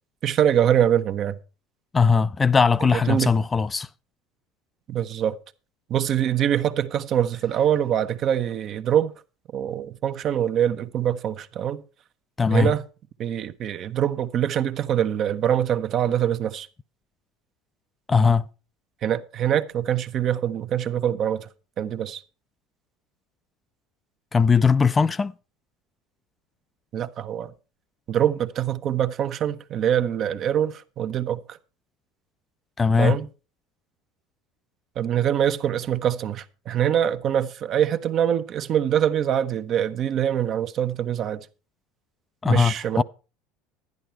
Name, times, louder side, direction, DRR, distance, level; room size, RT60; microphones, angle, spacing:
voice 1, 0.2-1.4 2.9-3.3 4.9-5.4 5.9-9.1 9.5-11.8 12.5-12.8 13.2-16.7 19.0-21.5 21.8-22.2 26.9-27.5 28.1-31.6 33.0-33.3 35.0-41.4 42.4-43.0, right 10 dB, 50° right, 0.9 m, -24 dB
voice 2, 1.9-3.9 12.4-12.7 18.1-18.5 24.3-25.3 32.8-33.2 42.4-43.0, left 5 dB, 25° left, 0.5 m, -19 dB
11.0 x 10.5 x 4.5 m
hypercardioid pair, 75°, 0 cm